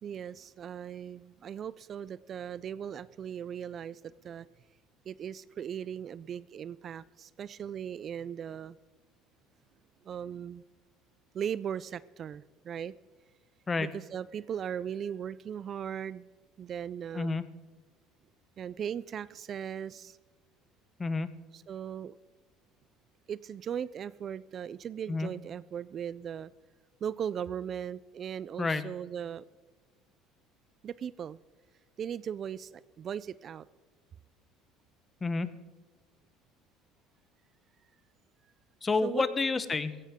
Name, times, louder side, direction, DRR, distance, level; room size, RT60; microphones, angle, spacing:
voice 1, 0.0-4.5 5.1-8.8 10.0-10.6 11.3-12.9 13.8-16.3 16.6-17.5 18.6-20.2 21.5-22.2 23.3-26.5 27.0-29.4 30.8-31.4 32.0-33.7 39.0-39.3, right 8 dB, 40° right, 18 dB, 0.3 m, -38 dB
voice 2, 21.0-21.3 25.1-25.3 28.6-28.8 35.2-35.5 38.8-40.0, left 3 dB, 20° left, 13 dB, 0.9 m, -29 dB
16.0 x 16.0 x 3.6 m, 1.3 s
cardioid pair, 120°, 0 cm